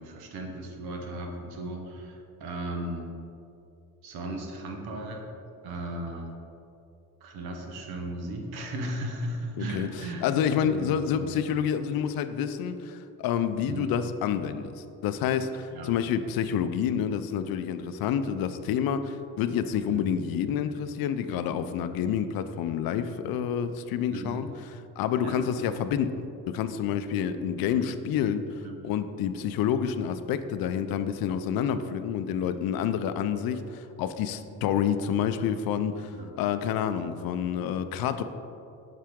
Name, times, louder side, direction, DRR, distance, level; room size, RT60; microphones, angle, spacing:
voice 1, 0.0-3.1 4.0-5.2 5.6-6.3 7.2-10.3 10.6-11.3 13.6-13.9 15.7-15.9 19.9-20.2 24.1-24.4 25.2-25.5 27.6-27.9 28.6-28.9 36.1-36.3, right 1 dB, 90° right, 2 dB, 1.1 m, -36 dB
voice 2, 9.6-24.5 25.0-28.6 28.8-38.2, left 8 dB, 70° left, 10 dB, 0.5 m, -28 dB
7.5 x 5.7 x 3.6 m, 2.7 s
cardioid pair, 130°, 36 cm